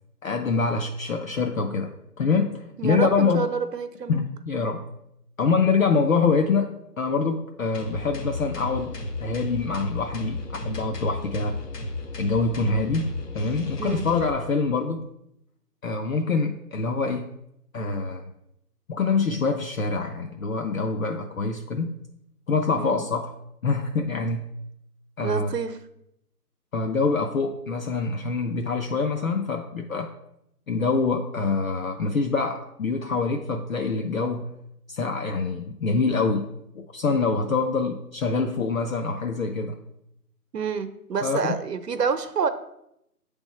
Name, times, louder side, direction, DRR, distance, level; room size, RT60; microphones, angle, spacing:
voice 1, 0.2-1.9 2.2-3.5 4.1-4.8 5.4-11.6 12.2-15.0 15.8-17.3 17.7-18.2 18.9-21.9 22.5-23.3 23.6-24.5 25.2-25.5 26.7-30.1 30.7-34.5 34.9-36.5 36.8-39.8 41.2-41.4, left 4 dB, 60° left, 4 dB, 0.6 m, -25 dB
voice 2, 2.8-4.2 13.8-14.1 22.8-23.0 25.2-25.8 40.5-42.5, right 6 dB, 85° right, 10 dB, 0.8 m, -27 dB
sound 1, 7.7-14.3, left 2 dB, 80° left, 1.2 m, -34 dB
7.2 x 3.5 x 4.1 m, 0.80 s
figure-of-eight pair, 160°, 47 cm